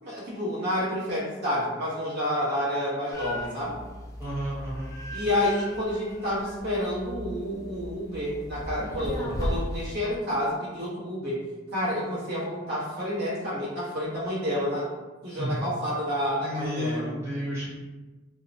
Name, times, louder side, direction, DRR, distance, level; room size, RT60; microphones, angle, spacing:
voice 1, 0.0-3.8 5.1-11.4 11.7-14.9 15.2-17.0, left 1 dB, 60° right, -8 dB, 1.0 m, -29 dB
sound 1, 3.1-9.9, equal, 20° left, 0.4 m, -36 dB
voice 2, 4.2-4.9 15.3-15.6 16.4-17.7, equal, 15° right, -10 dB, 0.7 m, -32 dB
2.6 x 2.1 x 2.6 m, 1.2 s
head